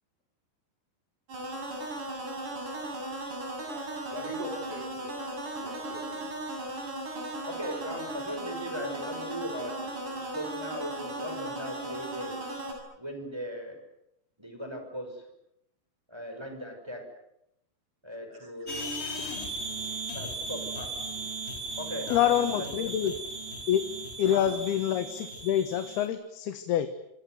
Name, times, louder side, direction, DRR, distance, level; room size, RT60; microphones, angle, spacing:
sound 1, 1.3-12.7, right 1 dB, 55° right, 8.8 m, -37 dB
voice 1, 3.7-5.1 5.6-6.3 18.3-18.9 19.3-19.4 19.8-20.1, equal, 40° right, 2 dB, 5.7 m, -43 dB
voice 2, 7.4-9.9 10.3-12.4 12.9-13.8 14.4-15.2 16.1-17.1 18.0-18.9 20.1-21.0 21.8-23.1 24.2-24.5, equal, 5° right, 5 dB, 5.6 m, -38 dB
sound 2, 18.7-26.1, right 2 dB, 15° left, 5.8 m, -37 dB
voice 3, 22.1-23.2 23.7-23.8 24.2-26.9, left 10 dB, 80° left, 9 dB, 3.3 m, -26 dB
27.0 x 26.5 x 7.8 m, 0.81 s
omnidirectional pair, 4.4 m